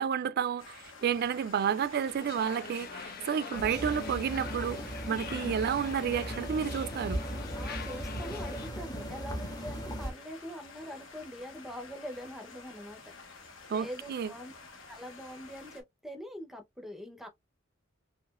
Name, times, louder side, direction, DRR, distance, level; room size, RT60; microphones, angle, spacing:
voice 1, 0.0-4.8 5.1-7.2 13.7-14.3, right 7 dB, 50° right, 0.3 m, -31 dB
sound 1, 0.6-15.8, left 4 dB, 70° left, 1.2 m, -51 dB
sound 2, 2.2-8.7, left 5 dB, 50° left, 0.7 m, -44 dB
sound 3, 3.5-10.1, equal, 20° left, 1.1 m, -38 dB
voice 2, 7.5-14.5 14.9-17.3, equal, ahead, 0.7 m, -44 dB
4.1 x 2.7 x 2.3 m
head